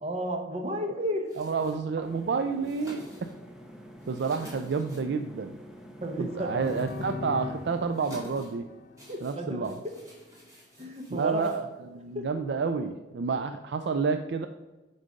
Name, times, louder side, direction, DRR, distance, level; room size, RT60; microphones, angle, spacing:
voice 1, 0.0-1.3 6.0-6.5 9.1-9.7 10.8-11.6 12.1-12.3, equal, 35° right, 4 dB, 1.0 m, -32 dB
sound 1, 1.2-12.1, equal, 20° right, 2.3 m, -51 dB
voice 2, 1.4-3.3 4.1-5.6 6.2-8.7 9.2-9.8 11.1-14.5, right 5 dB, 65° right, 8 dB, 0.4 m, -30 dB
sound 2, 2.0-7.8, equal, 5° right, 0.7 m, -48 dB
sound 3, 6.1-9.9, left 3 dB, 45° left, 0.7 m, -40 dB
9.8 x 4.0 x 5.2 m, 1.1 s
head